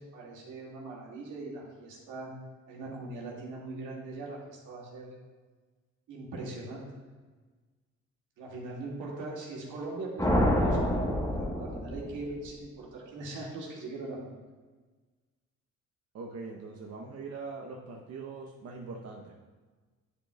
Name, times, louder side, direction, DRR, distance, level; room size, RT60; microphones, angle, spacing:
voice 1, 0.0-2.3 2.7-5.1 6.1-6.8 8.4-14.4, right 2 dB, 80° right, -4 dB, 1.9 m, -41 dB
sound 1, 10.2-12.4, equal, 10° left, 1.0 m, -27 dB
voice 2, 16.1-19.4, right 4 dB, 55° right, -1 dB, 0.7 m, -42 dB
9.8 x 5.1 x 2.2 m, 1.4 s
cardioid pair, 90°, 30 cm